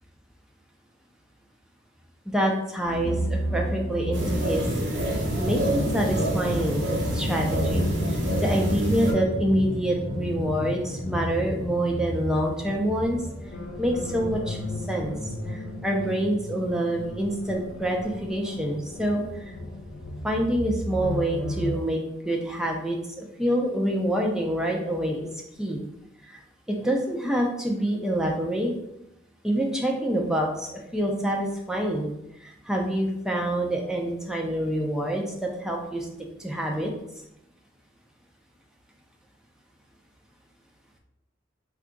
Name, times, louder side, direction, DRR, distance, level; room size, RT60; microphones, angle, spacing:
voice 1, 2.3-4.6 5.1-7.8 8.4-13.2 13.8-14.6 14.9-15.1 15.5-19.2 20.2-22.0 22.2-25.3 25.6-25.8 26.7-28.7 29.4-32.1 32.4-36.1 36.4-36.9, right 1 dB, 5° right, -1 dB, 0.4 m, -26 dB
sound 1, 2.8-21.8, equal, 70° left, 0.7 m, -32 dB
sound 2, 4.1-9.1, right 1 dB, 65° right, 0.8 m, -27 dB
2.7 x 2.3 x 3.7 m, 0.85 s
head